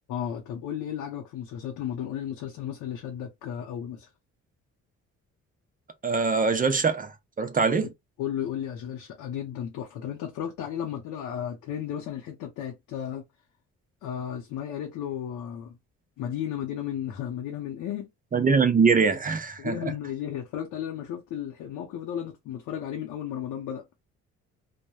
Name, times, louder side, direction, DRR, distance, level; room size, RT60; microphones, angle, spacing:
voice 1, 0.1-4.1 8.2-13.2 14.0-15.7 16.2-18.1 19.6-23.8, left 9 dB, 90° left, 0.6 m, -34 dB
voice 2, 6.0-7.9 18.3-19.8, right 5 dB, 30° right, 0.5 m, -23 dB
3.0 x 2.1 x 2.2 m
cardioid pair, 90°, 30 cm